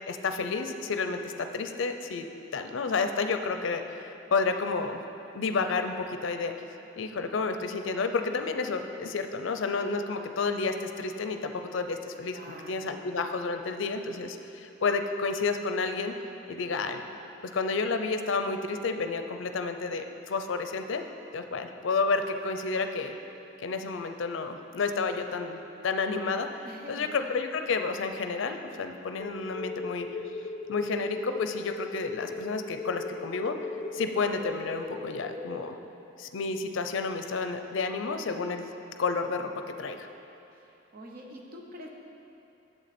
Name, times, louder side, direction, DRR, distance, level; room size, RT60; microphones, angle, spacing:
voice 1, 0.1-2.3 2.5-5.0 5.3-6.5 7.0-16.2 16.5-17.0 17.5-21.0 21.3-23.2 23.6-26.5 26.9-30.1 30.7-33.6 33.9-35.8 36.2-38.7 39.0-40.1, left 4 dB, 75° left, 7 dB, 0.5 m, -30 dB
voice 2, 12.3-12.8 26.6-27.2 40.5-41.9, equal, 45° right, 0 dB, 0.9 m, -46 dB
sound 1, 29.2-35.6, left 3 dB, 15° left, 0.6 m, -38 dB
8.1 x 7.3 x 4.3 m, 2.9 s
head